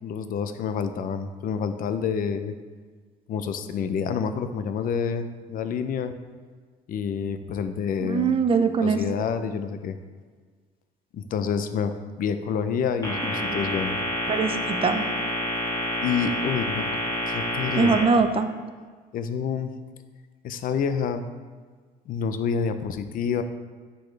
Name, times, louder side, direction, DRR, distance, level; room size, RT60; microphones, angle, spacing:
voice 1, 0.0-2.6 3.3-6.1 6.9-8.3 8.8-10.0 11.1-14.0 16.0-17.0 17.3-18.0 19.1-19.7 20.4-21.2 22.1-23.4, left 6 dB, 55° left, 10 dB, 0.6 m, -28 dB
voice 2, 8.0-9.0 14.3-15.0 17.7-18.5, right 5 dB, 35° right, 7 dB, 0.6 m, -22 dB
sound 1, 13.0-18.0, left 1 dB, 25° left, 2.1 m, -28 dB
10.0 x 4.3 x 3.3 m, 1.5 s
cardioid pair, 110°, 17 cm